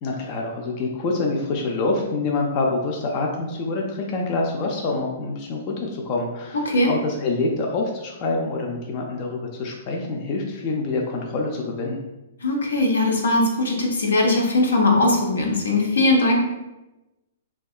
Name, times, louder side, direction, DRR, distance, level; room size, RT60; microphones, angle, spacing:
voice 1, 0.0-12.0, left 3 dB, 40° left, 0 dB, 0.4 m, -26 dB
voice 2, 12.4-16.4, left 2 dB, 85° left, 0 dB, 0.6 m, -20 dB
2.7 x 2.3 x 2.3 m, 1.0 s
hypercardioid pair, 130°, 0 cm